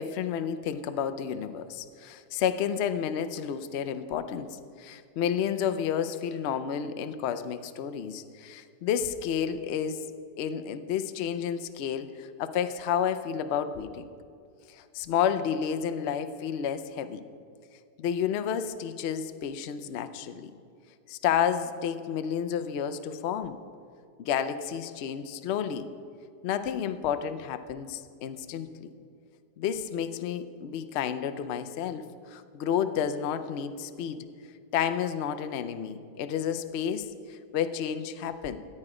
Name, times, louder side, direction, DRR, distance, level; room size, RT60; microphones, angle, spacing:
voice 1, 0.0-10.1 10.4-14.1 14.7-17.2 18.0-20.5 21.1-23.6 24.2-25.9 26.4-28.9 29.6-34.3 34.7-38.6, left 8 dB, 70° left, 10 dB, 0.6 m, -31 dB
14.0 x 8.9 x 4.9 m, 2.4 s
omnidirectional pair, 1.9 m